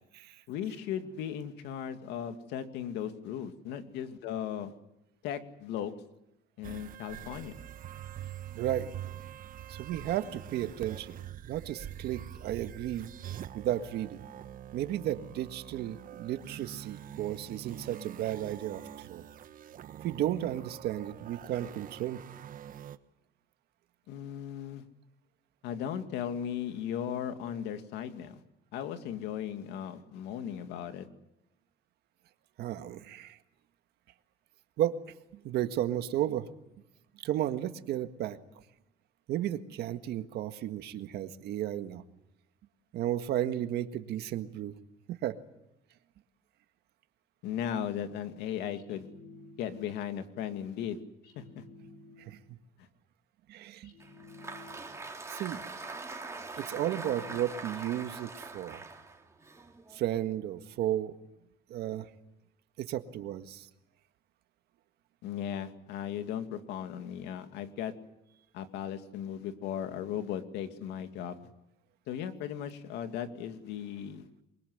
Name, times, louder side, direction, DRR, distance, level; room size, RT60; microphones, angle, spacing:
voice 1, 0.5-4.7 5.2-5.9 6.6-7.6 24.1-24.8 25.6-28.4 28.7-31.1 47.4-49.1 49.6-51.0 51.4-51.6 52.8-52.9 65.2-67.9 68.5-71.4 72.1-74.4, left 9 dB, 90° left, 8 dB, 2.3 m, -37 dB
sound 1, 6.6-23.0, right 11 dB, 55° right, 1.2 m, -45 dB
voice 2, 8.6-8.9 9.7-11.1 11.5-14.2 14.7-19.3 20.0-22.2 32.6-33.4 34.8-35.0 35.3-36.5 37.2-38.4 39.3-42.0 42.9-44.7 45.1-45.4 52.3-52.4 53.5-53.9 55.3-55.6 56.6-58.8 59.9-61.1 61.7-62.1 62.8-63.7, right 12 dB, 75° right, 9 dB, 1.8 m, -33 dB
sound 2, 48.7-50.1 51.2-52.6 53.8-55.2 56.5-57.9, left 2 dB, 70° left, 5.2 m, -53 dB
Applause, 54.0-60.3, right 3 dB, 15° right, 3.5 m, -43 dB
27.5 x 23.0 x 8.0 m, 0.87 s
cardioid pair, 110°, 17 cm